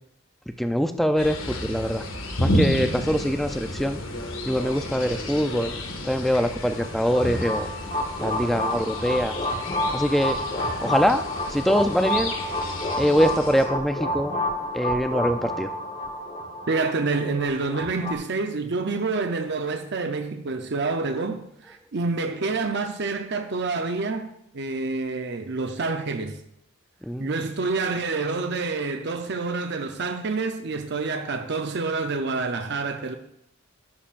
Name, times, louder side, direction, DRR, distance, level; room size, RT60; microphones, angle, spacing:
voice 1, 0.6-2.0 2.4-4.0 4.5-5.7 6.0-7.7 8.2-9.4 9.9-10.4 10.8-11.2 11.5-12.3 13.0-14.3 14.7-15.7 27.0-27.4, equal, ahead, 0.4 m, -23 dB
sound 1, 1.2-13.6, left 1 dB, 75° left, 1.8 m, -31 dB
Gurgling Synth Chord, 6.8-18.1, left 1 dB, 30° left, 1.2 m, -30 dB
voice 2, 16.7-26.4 27.2-33.1, right 3 dB, 55° right, 0.7 m, -27 dB
13.0 x 11.0 x 2.5 m
head